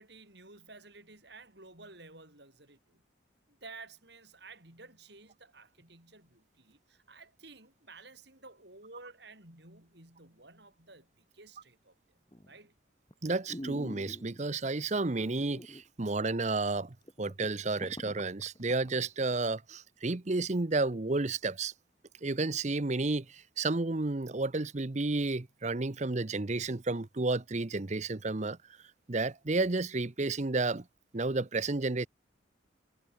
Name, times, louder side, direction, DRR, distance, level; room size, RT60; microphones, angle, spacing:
voice 1, 0.0-3.0 3.5-12.2 12.5-12.7, right 3 dB, 55° right, 7.8 m, -53 dB
sound 1, 12.3-12.7 13.1-13.2 13.5-14.5 15.2-15.9 16.2-16.3 16.7-16.8 17.1-19.0 19.4-19.5, equal, 20° left, 3.0 m, -45 dB
voice 2, 13.2-21.7 22.2-28.6 29.1-30.8 31.1-32.1, right 3 dB, 35° right, 0.8 m, -31 dB
head